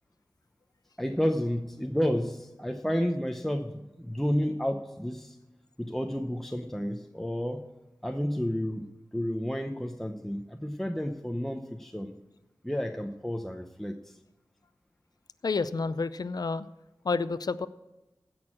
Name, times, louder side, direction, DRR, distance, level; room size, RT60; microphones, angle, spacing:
voice 1, 1.0-5.4 5.8-7.7 8.0-8.9 9.1-12.2 12.6-14.2, equal, 5° left, 4 dB, 0.8 m, -31 dB
voice 2, 15.4-16.7 17.0-17.7, left 4 dB, 65° left, 14 dB, 0.5 m, -29 dB
16.0 x 6.4 x 7.6 m, 1.0 s
wide cardioid pair, 70°, 7 cm